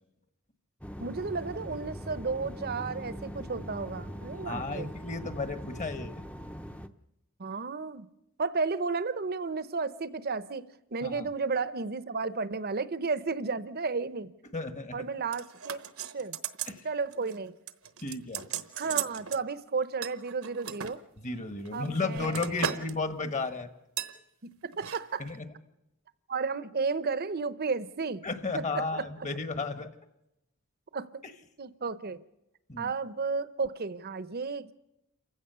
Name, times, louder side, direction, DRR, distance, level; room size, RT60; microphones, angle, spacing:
sound 1, 0.8-6.9, equal, 5° left, 0.7 m, -41 dB
voice 1, 1.0-4.9 7.4-8.1 8.4-10.6 10.9-14.3 14.9-16.4 16.8-17.6 18.8-21.0 21.7-22.8 24.6-25.3 26.3-28.2 28.5-29.3 30.9-31.2 31.6-32.2 32.8-34.7, right 4 dB, 45° right, 0.8 m, -33 dB
voice 2, 4.4-6.1 11.0-11.3 14.5-15.0 16.7-16.8 18.0-18.4 21.2-23.7 25.2-25.5 28.2-29.9 32.7-32.9, left 3 dB, 35° left, 1.3 m, -33 dB
sound 2, 15.3-16.8 17.1-17.4 17.7-19.4 20.0-20.9 21.6-22.9 23.2-23.5 24.0-24.2 24.7-25.0 25.3-25.4, right 8 dB, 70° right, 1.0 m, -36 dB
28.0 x 15.5 x 6.8 m
head